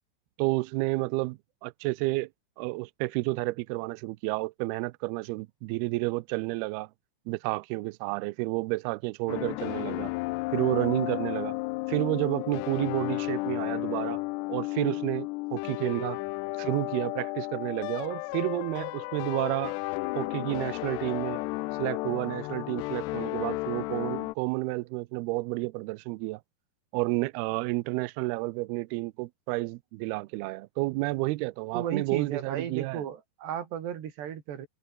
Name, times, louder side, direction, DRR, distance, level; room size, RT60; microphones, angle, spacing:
voice 1, 0.4-2.3 2.6-6.9 7.3-10.1 10.5-11.6 11.9-14.2 14.5-16.2 16.6-19.8 20.2-21.4 21.8-26.4 26.9-33.0, right 22 dB, 90° right, 2.2 m, -30 dB
sound 1, 9.3-24.4, left 24 dB, 85° left, 2.4 m, -33 dB
voice 2, 31.7-34.7, right 9 dB, 65° right, 4.7 m, -34 dB
omnidirectional pair, 5.3 m